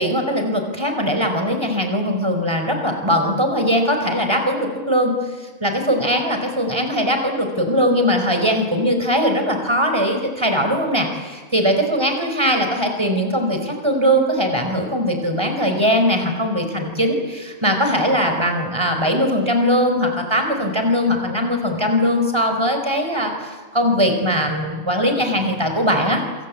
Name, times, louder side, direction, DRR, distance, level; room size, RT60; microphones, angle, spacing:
voice 1, 0.0-5.1 5.6-26.2, equal, 20° right, 5 dB, 4.8 m, -20 dB
27.0 x 26.0 x 8.6 m, 1.4 s
omnidirectional pair, 1.3 m